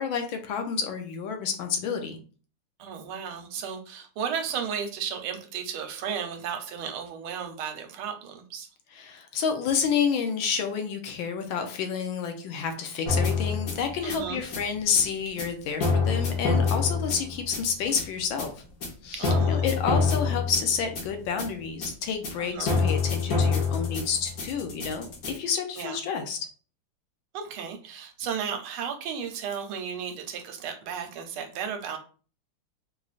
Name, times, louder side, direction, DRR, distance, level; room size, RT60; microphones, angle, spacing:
voice 1, 0.0-2.2 8.9-18.6 19.0-26.4, left 6 dB, 75° left, 5 dB, 1.3 m, -29 dB
voice 2, 2.8-8.7 14.0-14.5 19.1-19.6 22.4-22.8 25.8-26.0 27.3-32.0, right 7 dB, 80° right, 6 dB, 1.5 m, -34 dB
sound 1, 13.1-25.3, left 4 dB, 55° left, 1.2 m, -27 dB
4.9 x 2.5 x 2.4 m, 0.39 s
omnidirectional pair, 2.4 m